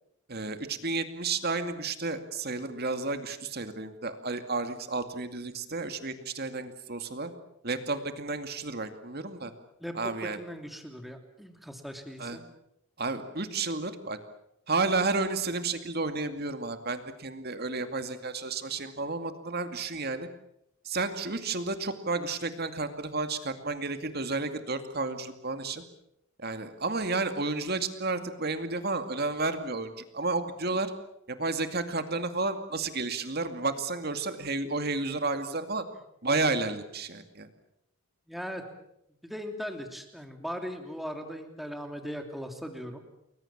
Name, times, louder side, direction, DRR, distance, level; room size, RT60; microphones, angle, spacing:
voice 1, 0.3-7.3 7.6-9.5 9.9-10.4 12.2-12.4 13.0-14.2 14.7-20.3 20.8-25.8 26.4-30.9 31.3-35.8 36.2-37.5, right 3 dB, 45° right, 8 dB, 2.3 m, -31 dB
voice 2, 10.4-12.4 38.3-38.6 39.2-43.0, equal, ahead, 5 dB, 3.0 m, -39 dB
30.0 x 21.5 x 7.4 m, 0.81 s
head